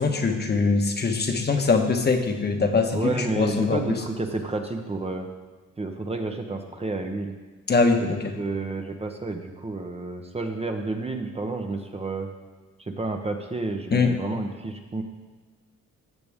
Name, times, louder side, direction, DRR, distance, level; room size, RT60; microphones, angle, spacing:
voice 1, 0.0-3.8 7.7-8.3 13.9-14.1, left 4 dB, 35° left, 4 dB, 1.2 m, -22 dB
voice 2, 2.9-5.3 5.8-7.4 8.0-12.3 12.8-15.0, right 3 dB, 20° right, 4 dB, 0.9 m, -30 dB
15.5 x 6.8 x 3.6 m, 1.3 s
cardioid pair, 90°, 30 cm